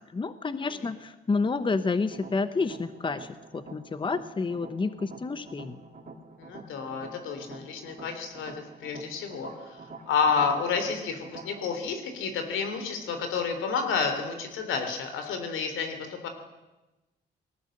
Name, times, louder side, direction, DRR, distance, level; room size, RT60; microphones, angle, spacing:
voice 1, 0.1-5.8, left 4 dB, 25° left, 12 dB, 1.0 m, -29 dB
sound 1, 2.1-11.8, right 3 dB, 40° right, 3.0 m, -47 dB
voice 2, 6.4-9.8 10.1-16.0 16.2-16.3, left 5 dB, 85° left, 7 dB, 3.6 m, -30 dB
20.0 x 18.0 x 7.9 m, 1.1 s
cardioid pair, 90°, 20 cm